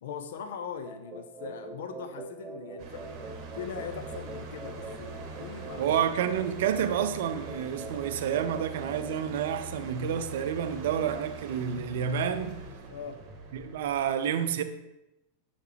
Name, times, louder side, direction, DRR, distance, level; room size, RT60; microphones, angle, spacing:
voice 1, 0.0-3.1 3.5-6.1 12.9-13.2, left 7 dB, 60° left, 0.6 m, -40 dB
sound 1, 0.8-9.1, right 2 dB, 10° right, 1.8 m, -44 dB
sound 2, 2.8-14.1, right 3 dB, 40° right, 1.1 m, -43 dB
voice 2, 5.8-12.6 13.5-14.6, right 8 dB, 55° right, 0.5 m, -29 dB
6.7 x 5.8 x 3.2 m
figure-of-eight pair, 90°, 0 cm